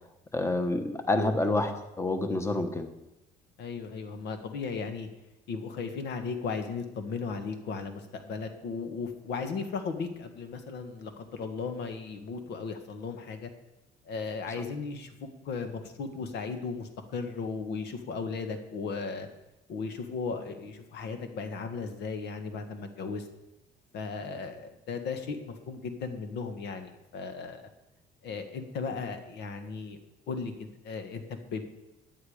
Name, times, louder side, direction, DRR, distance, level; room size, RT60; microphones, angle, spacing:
voice 1, 0.3-2.9, left 2 dB, 15° left, 7 dB, 1.3 m, -28 dB
voice 2, 3.6-5.1 5.5-13.5 14.0-19.3 19.7-23.3 23.9-27.6 28.2-30.0 30.3-31.7, left 4 dB, 75° left, 7 dB, 1.7 m, -36 dB
14.0 x 10.0 x 5.1 m, 0.94 s
cardioid pair, 110°, 17 cm